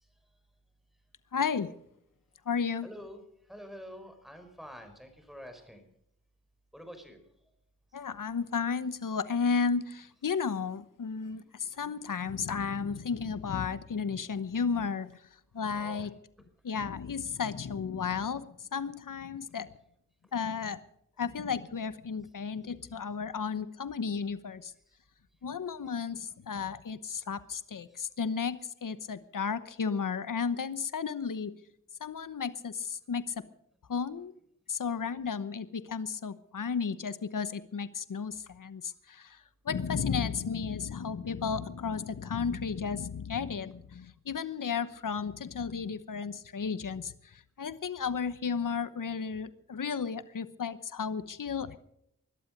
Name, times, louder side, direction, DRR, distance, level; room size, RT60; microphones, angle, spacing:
voice 1, 1.3-1.7 2.5-2.9 7.9-15.2 15.5-16.1 16.6-19.7 20.3-20.8 21.2-24.7 25.4-31.5 32.0-33.4 33.9-34.3 34.7-51.8, left 6 dB, 75° left, 14 dB, 1.0 m, -33 dB
voice 2, 2.8-3.2 3.5-5.8 6.7-7.2 15.7-16.1, equal, ahead, 7 dB, 5.2 m, -47 dB
21.5 x 12.0 x 5.3 m, 0.75 s
cardioid pair, 40°, 32 cm